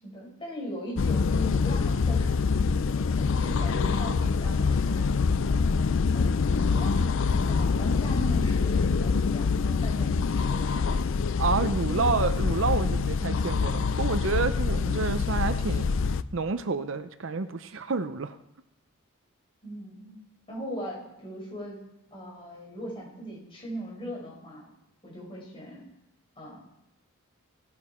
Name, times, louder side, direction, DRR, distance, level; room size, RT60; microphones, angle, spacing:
voice 1, 0.0-5.1 6.1-11.3 11.9-12.1 19.6-20.2 20.5-21.8 22.1-24.7 25.0-25.8 26.4-26.6, equal, 25° left, -3 dB, 5.3 m, -39 dB
sound 1, 1.0-16.2, left 5 dB, 65° left, 0.4 m, -25 dB
voice 2, 11.4-15.9 16.3-18.3, right 4 dB, 60° right, 11 dB, 0.6 m, -29 dB
18.0 x 10.5 x 4.4 m, 0.87 s
head